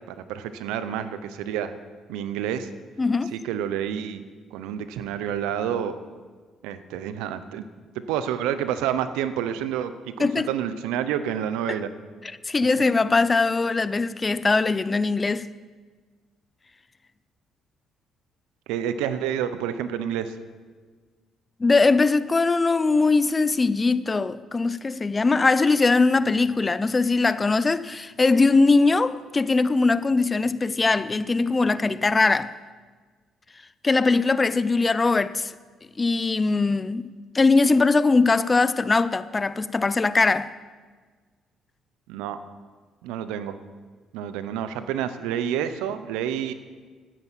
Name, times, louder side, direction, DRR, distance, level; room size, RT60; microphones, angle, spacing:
voice 1, 0.1-1.7 2.1-2.7 3.3-4.2 4.5-5.9 6.6-7.7 8.1-11.9 18.7-20.3 42.1-42.4 43.0-43.5 44.1-46.5, right 9 dB, 85° right, 0.9 m, -29 dB
voice 2, 3.0-3.3 10.2-10.5 11.7-11.8 12.2-15.5 21.6-32.5 33.8-35.5 36.0-40.5, left 3 dB, 30° left, 0.6 m, -21 dB
12.0 x 10.0 x 7.6 m
supercardioid pair, 65°, 0 cm